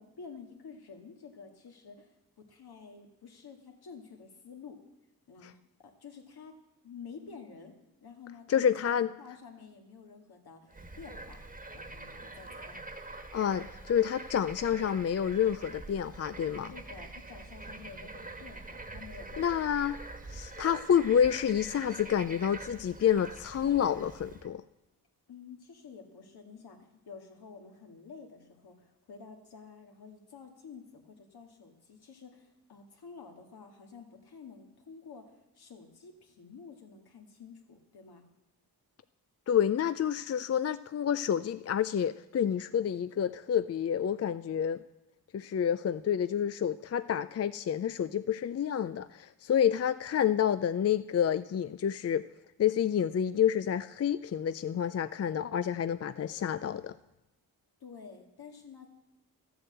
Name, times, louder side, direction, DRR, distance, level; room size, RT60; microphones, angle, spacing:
voice 1, 0.0-4.8 5.3-6.6 6.8-11.4 11.7-12.8 16.7-19.6 25.3-38.3 57.8-58.9, left 5 dB, 75° left, 3 dB, 2.1 m, -50 dB
voice 2, 8.5-9.1 13.3-16.7 19.4-20.0 20.3-24.6 39.5-44.8 45.3-52.2 52.6-56.9, left 9 dB, 40° left, 13 dB, 0.4 m, -29 dB
Bird / Frog, 10.7-24.5, right 2 dB, 20° right, 1.5 m, -45 dB
13.0 x 7.9 x 7.9 m, 0.95 s
cardioid pair, 80°, 38 cm